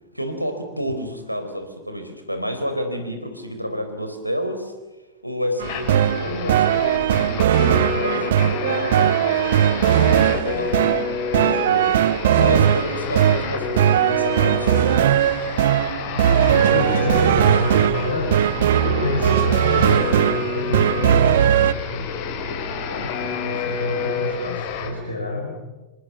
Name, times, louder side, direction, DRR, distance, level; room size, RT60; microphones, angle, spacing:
voice 1, 0.1-4.7 5.2-10.9 11.4-12.0 12.4-15.2, equal, 90° right, 6 dB, 4.1 m, -29 dB
sound 1, 5.6-24.9, left 5 dB, 50° left, 5.0 m, -29 dB
sound 2, 5.6-21.7, right 10 dB, 60° right, 1.0 m, -19 dB
voice 2, 16.1-18.4 18.8-22.2 22.9-25.6, left 1 dB, 80° left, 0 dB, 5.1 m, -27 dB
27.5 x 26.0 x 7.1 m, 1.1 s
figure-of-eight pair, 90°, 0 cm